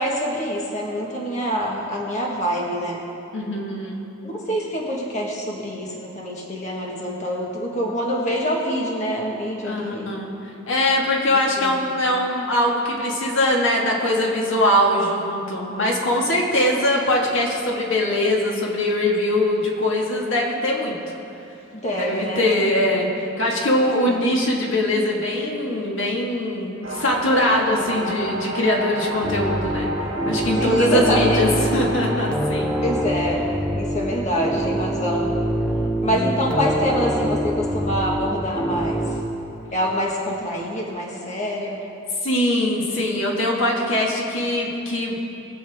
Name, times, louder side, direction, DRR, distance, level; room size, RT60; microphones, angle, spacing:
voice 1, 0.0-3.0 4.2-10.2 11.6-11.8 21.7-23.0 24.0-24.4 30.6-31.6 32.7-33.4 33.7-35.3 36.0-39.0 39.7-41.8, equal, 35° left, -2 dB, 1.5 m, -25 dB
voice 2, 3.3-4.0 9.6-10.3 10.7-21.0 21.9-29.9 30.3-32.8 36.0-36.5 42.2-45.3, left 1 dB, 70° left, -2 dB, 1.8 m, -22 dB
sound 1, 26.8-32.4, right 1 dB, 70° right, 2.1 m, -30 dB
sound 2, 29.2-39.2, right 1 dB, 5° left, 0.8 m, -25 dB
22.0 x 8.0 x 3.5 m, 2.9 s
head